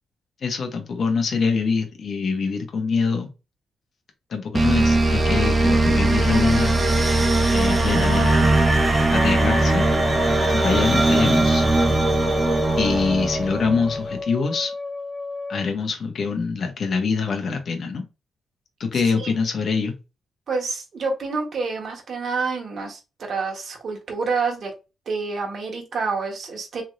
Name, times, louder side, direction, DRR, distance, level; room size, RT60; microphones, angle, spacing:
voice 1, 0.4-3.3 4.3-6.7 7.5-8.5 9.1-11.6 12.8-14.7 15.5-18.0 18.8-19.9, left 5 dB, 65° left, 1.1 m, -25 dB
sound 1, 4.5-14.0, right 2 dB, 35° right, 0.9 m, -19 dB
Wind instrument woodwind instrument, 9.1-15.7, left 3 dB, 45° left, 1.5 m, -31 dB
voice 2, 18.9-19.3 20.5-24.7 25.0-26.8, right 4 dB, 65° right, 1.6 m, -28 dB
3.5 x 3.2 x 2.7 m
cardioid pair, 65°, 0 cm